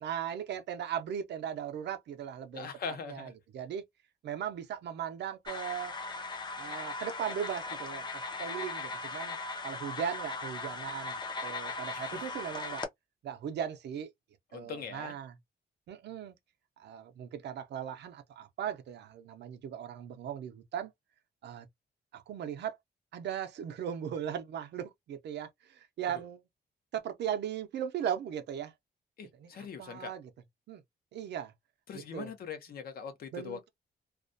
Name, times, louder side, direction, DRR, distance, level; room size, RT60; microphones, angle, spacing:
voice 1, 0.0-3.8 4.2-5.9 6.6-9.4 9.6-12.9 13.2-14.1 14.5-15.3 15.9-16.4 16.8-20.9 21.4-21.7 22.1-22.8 23.1-26.4 26.9-28.7 29.3-30.3 30.7-30.8 31.1-31.5 31.9-32.3 33.3-33.6, right 9 dB, 75° right, 0.5 m, -38 dB
voice 2, 2.5-3.3 11.9-12.3 14.5-15.1 29.2-30.2 31.9-33.7, left 6 dB, 60° left, 0.7 m, -42 dB
sound 1, 5.5-12.8, left 3 dB, 25° left, 0.5 m, -38 dB
2.4 x 2.1 x 2.5 m
wide cardioid pair, 165°, 18 cm